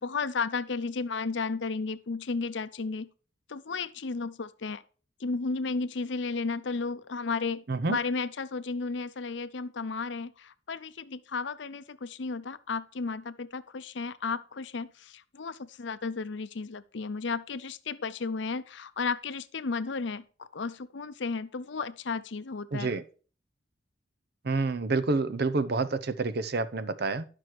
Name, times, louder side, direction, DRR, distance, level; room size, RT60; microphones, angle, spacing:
voice 1, 0.0-3.1 3.5-4.8 5.2-22.9, left 4 dB, 70° left, 0.6 m, -33 dB
voice 2, 22.7-23.0 24.5-27.3, right 3 dB, 55° right, 0.6 m, -28 dB
11.0 x 6.2 x 4.6 m
head